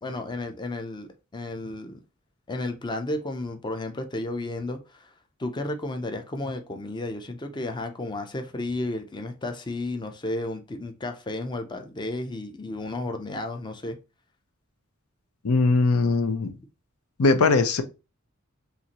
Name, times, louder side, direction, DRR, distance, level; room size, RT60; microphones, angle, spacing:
voice 1, 0.0-2.0 2.5-5.1 5.4-14.0, left 2 dB, 20° left, 0.5 m, -33 dB
voice 2, 15.4-16.6 17.2-17.8, left 3 dB, 85° left, 0.6 m, -20 dB
5.6 x 2.5 x 2.9 m
head